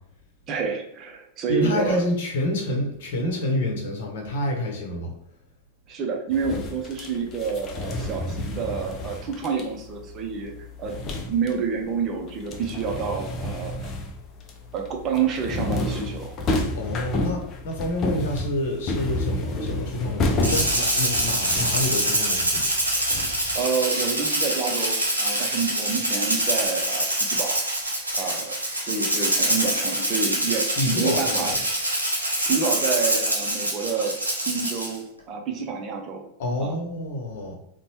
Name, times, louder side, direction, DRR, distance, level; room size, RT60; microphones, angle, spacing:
voice 1, 0.5-2.0 5.9-10.9 11.3-14.0 14.7-16.4 23.5-27.6 28.1-31.5 32.5-34.2 34.4-36.3 36.6-36.8, right 6 dB, 30° right, 2 dB, 0.6 m, -28 dB
voice 2, 1.5-5.1 16.7-22.7 30.8-31.5 36.4-37.5, left 1 dB, 55° left, 2 dB, 0.9 m, -28 dB
sound 1, 6.3-11.7 12.0-23.6, left 1 dB, 30° left, 0.5 m, -30 dB
Rattle (instrument), 20.4-35.0, right 1 dB, 85° right, 0.8 m, -25 dB
4.0 x 2.2 x 3.0 m, 0.73 s
figure-of-eight pair, 90°, 0 cm